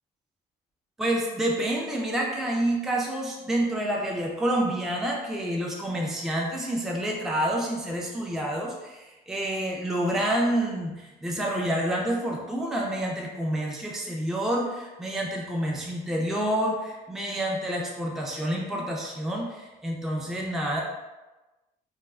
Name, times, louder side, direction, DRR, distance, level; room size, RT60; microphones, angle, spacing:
voice 1, 1.0-20.8, right 1 dB, ahead, -2 dB, 0.4 m, -28 dB
2.3 x 2.1 x 3.3 m, 1.1 s
cardioid pair, 110°, 17 cm